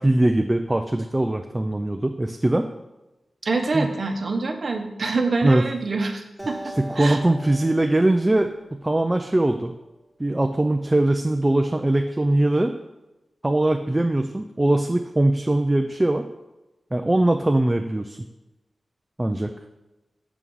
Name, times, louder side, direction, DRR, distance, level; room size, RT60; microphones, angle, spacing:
voice 1, 0.0-2.7 3.7-3.9 5.4-5.7 6.8-9.7 10.2-12.7 13.4-16.3 16.9-18.2 19.2-19.5, right 1 dB, 15° right, 5 dB, 0.4 m, -21 dB
voice 2, 3.4-7.2, right 3 dB, 50° right, 4 dB, 0.8 m, -26 dB
Acoustic guitar, 6.4-9.7, right 1 dB, ahead, 1.3 m, -40 dB
6.9 x 3.7 x 6.2 m, 1.0 s
wide cardioid pair, 110°, 0 cm